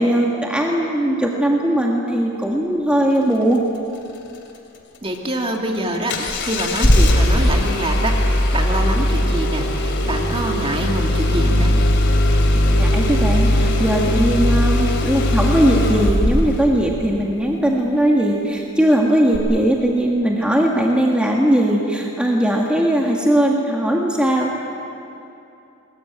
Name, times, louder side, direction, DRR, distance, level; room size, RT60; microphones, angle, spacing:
voice 1, 0.0-3.6 12.5-24.6, right 1 dB, 5° right, -2 dB, 1.7 m, -19 dB
voice 2, 5.0-11.7, right 1 dB, 25° right, 2 dB, 2.3 m, -25 dB
Engine starting, 6.1-16.7 19.3-19.4, left 1 dB, 55° left, 2.8 m, -18 dB
21.5 x 21.0 x 9.2 m, 2.8 s
head